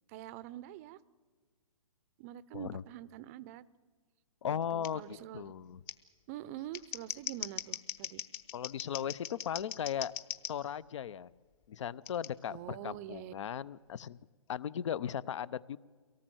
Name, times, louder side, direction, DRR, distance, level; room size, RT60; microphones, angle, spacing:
voice 1, 0.1-1.0 2.2-3.6 4.4-5.5 6.3-8.2 12.5-13.3, right 13 dB, 25° right, 19 dB, 0.6 m, -45 dB
voice 2, 4.4-5.8 8.5-10.1 10.5-11.3 11.7-14.2 14.5-15.8, left 9 dB, 55° left, 20 dB, 0.7 m, -37 dB
Scissors, 4.8-4.9 5.9-6.0 6.6-10.5 12.1-12.3, left 11 dB, 25° left, 1.1 m, -40 dB
24.0 x 18.5 x 7.8 m, 1.5 s
hypercardioid pair, 145°, 18 cm